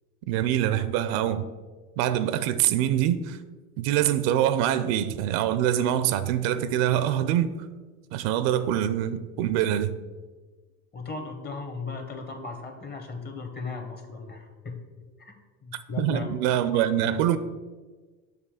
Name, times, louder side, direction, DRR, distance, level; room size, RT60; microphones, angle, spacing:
voice 1, 0.3-1.5 2.0-3.4 3.8-7.5 8.1-9.9 16.0-17.4, right 11 dB, 80° right, 13 dB, 0.5 m, -24 dB
voice 2, 10.9-14.8 15.2-15.3 15.6-16.3, left 4 dB, 35° left, 5 dB, 1.1 m, -36 dB
6.6 x 2.8 x 5.6 m, 1.3 s
supercardioid pair, 110°, 30 cm